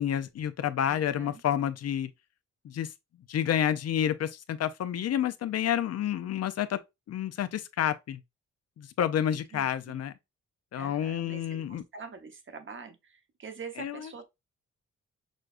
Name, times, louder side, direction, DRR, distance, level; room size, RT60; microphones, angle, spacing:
voice 1, 0.0-2.1 2.6-2.9 3.3-6.8 7.1-8.2 8.8-10.1 10.7-11.8 13.8-14.0, left 10 dB, 55° left, 0.6 m, -29 dB
voice 2, 0.8-1.4 9.3-10.0 10.8-14.3, right 5 dB, 40° right, 1.0 m, -45 dB
6.3 x 2.2 x 2.5 m
cardioid pair, 80°, 30 cm